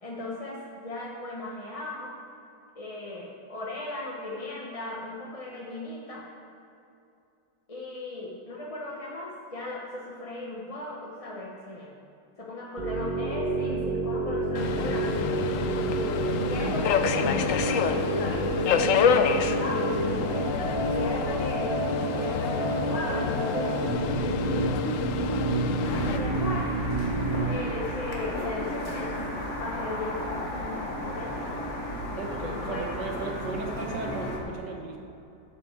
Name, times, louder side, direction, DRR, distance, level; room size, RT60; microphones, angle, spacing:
voice 1, 0.0-2.1 2.7-6.2 7.7-11.9 12.4-15.3 16.4-20.1 20.9-21.7 22.2-24.8 26.1-26.7 27.4-31.4 32.3-32.9, left 2 dB, 25° left, -3 dB, 0.8 m, -37 dB
sound 1, 12.8-27.5, right 2 dB, 25° right, 1.6 m, -29 dB
Subway metro underground, 14.5-26.2, left 7 dB, 70° left, 0.7 m, -28 dB
sound 2, 25.8-34.4, left 1 dB, 45° left, 1.5 m, -34 dB
voice 2, 32.2-35.0, right 3 dB, 70° right, 1 dB, 1.8 m, -35 dB
12.5 x 7.6 x 4.7 m, 2.7 s
omnidirectional pair, 1.9 m